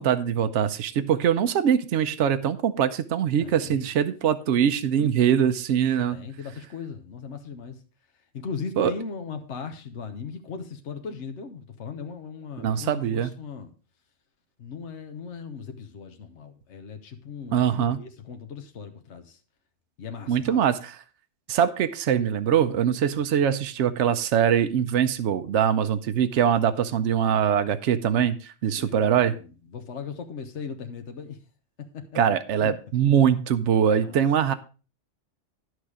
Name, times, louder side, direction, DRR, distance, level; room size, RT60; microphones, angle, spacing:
voice 1, 0.0-6.2 8.8-8.9 12.6-13.3 17.5-18.0 20.3-21.0 21.5-29.3 32.2-34.5, right 8 dB, 75° right, 1.0 m, -23 dB
voice 2, 3.4-3.9 4.7-5.1 6.1-7.8 8.3-13.7 14.6-17.6 18.0-19.4 20.0-20.6 23.2-23.3 28.7-31.4 31.8-32.2 32.5-32.7 33.9-34.2, left 5 dB, 70° left, 1.3 m, -38 dB
10.5 x 6.4 x 4.8 m
omnidirectional pair, 1.2 m